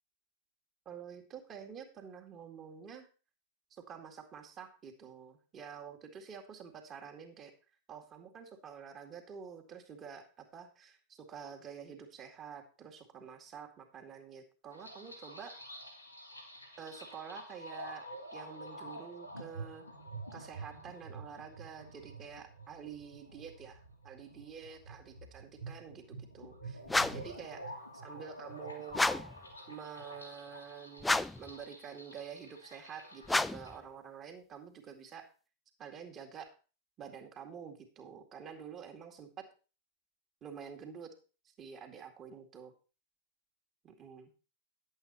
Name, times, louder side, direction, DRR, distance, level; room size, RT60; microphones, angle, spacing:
voice 1, 0.9-3.1 3.7-7.5 7.9-15.6 16.8-18.0 18.3-19.9 20.3-26.8 27.1-29.1 29.7-35.3 35.8-36.5 37.0-39.5 40.4-41.1 41.6-42.7 43.8-44.3, right 7 dB, 30° right, 4 dB, 2.1 m, -48 dB
sound 1, 14.7-33.8, right 1 dB, 90° left, 3.0 m, -48 dB
sound 2, 26.9-27.4 28.9-29.4 31.0-31.5 33.3-33.8, left 2 dB, 5° left, 0.4 m, -30 dB
10.5 x 8.3 x 4.2 m, 0.34 s
figure-of-eight pair, 90°, 0 cm